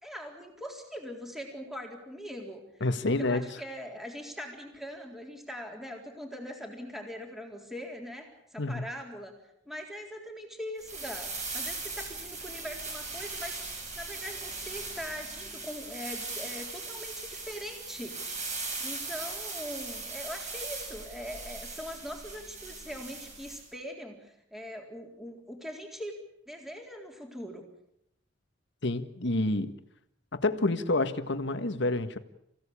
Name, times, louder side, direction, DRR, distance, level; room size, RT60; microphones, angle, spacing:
voice 1, 0.0-2.6 3.0-9.4 9.7-18.2 18.8-26.1 26.5-27.6, equal, ahead, 2 dB, 3.9 m, -41 dB
voice 2, 2.8-3.6 8.6-8.9 28.8-29.7 30.3-32.2, left 2 dB, 65° left, 9 dB, 1.7 m, -28 dB
sound 1, 10.8-23.6, right 3 dB, 40° right, 7.6 m, -39 dB
28.0 x 16.5 x 8.7 m, 0.76 s
head